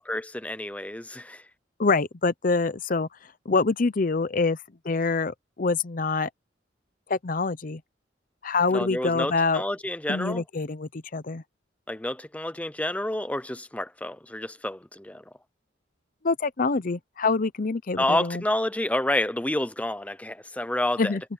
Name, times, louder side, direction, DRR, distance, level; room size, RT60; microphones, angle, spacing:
voice 1, 0.1-1.4 8.7-10.4 11.9-15.2 18.0-21.2, left 1 dB, 5° left, 0.7 m, -29 dB
voice 2, 1.8-3.1 3.5-4.6 4.8-6.3 7.1-7.8 8.4-9.6 10.1-11.4 16.2-18.4 21.0-21.2, left 4 dB, 45° left, 0.7 m, -25 dB
head